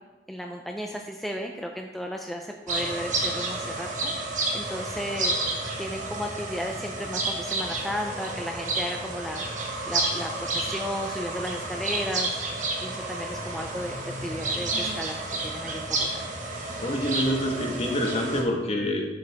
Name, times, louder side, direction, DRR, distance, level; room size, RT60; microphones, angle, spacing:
voice 1, 0.3-4.1 4.5-5.4 5.8-9.4 9.8-12.3 12.8-13.9 14.2-15.2 15.4-16.2, equal, ahead, 1 dB, 0.4 m, -34 dB
sound 1, 2.7-18.4, right 2 dB, 45° right, 1.4 m, -30 dB
voice 2, 16.8-19.1, equal, 35° left, 1 dB, 1.3 m, -26 dB
10.0 x 8.2 x 3.5 m, 1.2 s
head